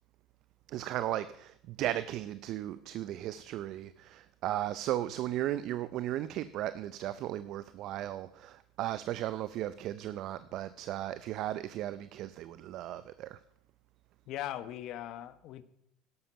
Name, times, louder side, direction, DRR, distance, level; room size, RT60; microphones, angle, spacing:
voice 1, 0.7-13.4, right 13 dB, 60° right, 0.5 m, -36 dB
voice 2, 14.3-15.6, left 12 dB, 60° left, 1.1 m, -39 dB
12.5 x 11.0 x 5.6 m
supercardioid pair, 100°, 0 cm